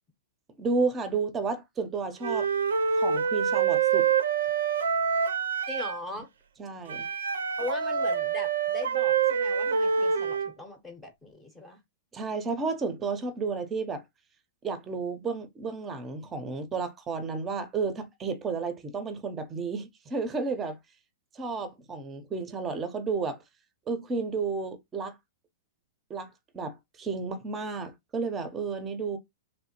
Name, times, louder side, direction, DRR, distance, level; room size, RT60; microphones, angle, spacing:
voice 1, 0.6-2.5 3.0-4.1 6.6-7.1 12.1-14.0 14.6-20.8 21.3-23.4 23.9-25.2 26.1-29.2, right 4 dB, 20° right, 0.6 m, -32 dB
Wind instrument woodwind instrument, 2.2-6.0 6.9-10.5, right 6 dB, 85° right, 0.5 m, -26 dB
voice 2, 5.7-6.3 7.6-11.8, left 2 dB, 10° left, 0.8 m, -39 dB
3.1 x 2.0 x 2.8 m
hypercardioid pair, 135°, 0 cm